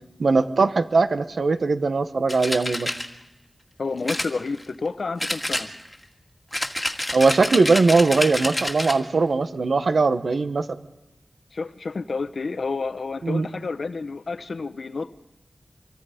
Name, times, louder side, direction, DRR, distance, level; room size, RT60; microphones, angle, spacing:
voice 1, 0.2-2.9 7.1-10.8 13.2-13.5, right 4 dB, 85° right, 10 dB, 1.1 m, -20 dB
sound 1, 2.3-3.1 4.1-4.9 5.2-6.0 6.5-9.0, left 1 dB, 15° left, 2.1 m, -28 dB
voice 2, 3.8-5.7 11.5-15.2, left 4 dB, 80° left, 11 dB, 0.9 m, -30 dB
25.5 x 24.0 x 5.1 m, 0.94 s
wide cardioid pair, 60°, 0 cm